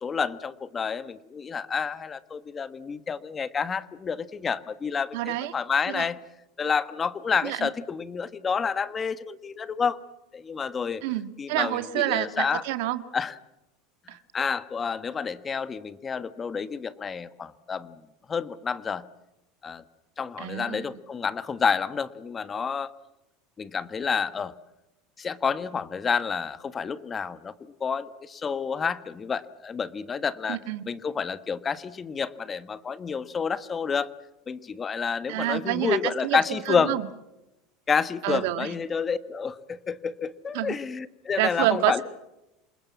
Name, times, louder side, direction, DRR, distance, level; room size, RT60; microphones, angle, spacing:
voice 1, 0.0-6.2 6.6-10.0 10.3-11.0 11.4-12.6 13.1-13.3 14.3-18.0 18.3-19.1 19.6-19.8 20.2-22.9 23.6-24.5 25.2-27.5 27.8-30.6 30.9-34.1 34.5-36.9 37.9-42.0, left 6 dB, 25° left, 14 dB, 1.3 m, -29 dB
voice 2, 5.1-5.5 5.9-6.0 7.4-7.7 11.0-13.0 14.1-14.2 20.4-20.9 30.5-30.8 35.3-37.1 38.2-38.7 40.5-40.7 41.4-42.0, right 16 dB, 75° right, 12 dB, 1.6 m, -28 dB
28.0 x 20.5 x 7.5 m, 0.93 s
supercardioid pair, 115°, 0 cm